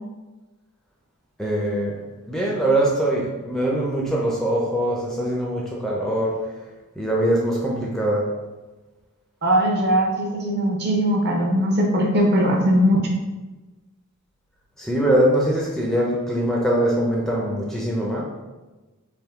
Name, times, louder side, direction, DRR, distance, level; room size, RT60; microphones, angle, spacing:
voice 1, 1.4-2.0 2.3-6.4 7.0-8.3 14.8-18.2, right 1 dB, ahead, -3 dB, 0.4 m, -22 dB
voice 2, 9.4-13.0, equal, 45° right, 0 dB, 0.7 m, -20 dB
3.5 x 2.6 x 3.5 m, 1.2 s
head